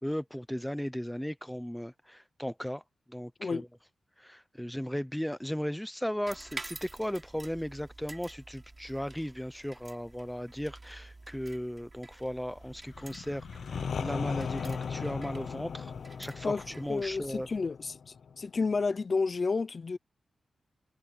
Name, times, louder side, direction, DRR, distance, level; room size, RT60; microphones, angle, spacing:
voice 1, 0.0-2.8 3.1-3.7 4.2-15.9 16.2-17.5, equal, 5° left, 0.9 m, -36 dB
sound 1, 6.3-17.6, right 2 dB, 25° right, 7.4 m, -49 dB
sound 2, 12.9-18.7, left 6 dB, 70° left, 1.0 m, -38 dB
voice 2, 16.4-20.0, left 4 dB, 40° left, 0.7 m, -31 dB
wide cardioid pair, 135°, 0 cm